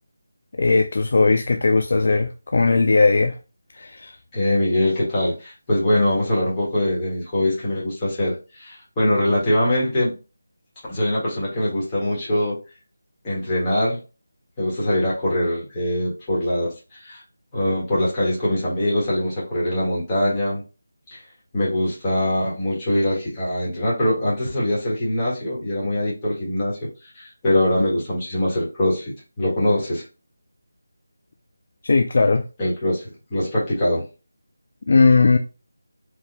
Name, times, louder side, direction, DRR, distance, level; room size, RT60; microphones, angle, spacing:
voice 1, 0.6-3.3 3.7-4.1 31.8-32.4 34.9-35.4, left 3 dB, 45° left, 0.4 m, -18 dB
voice 2, 4.3-10.2 10.9-12.6 13.2-14.0 14.6-16.7 17.0-17.2 17.5-20.6 21.1-21.2 21.5-26.9 27.1-30.0 32.6-34.0, left 1 dB, 15° left, 1.6 m, -22 dB
4.6 x 2.8 x 3.4 m
figure-of-eight pair, 175°, 0 cm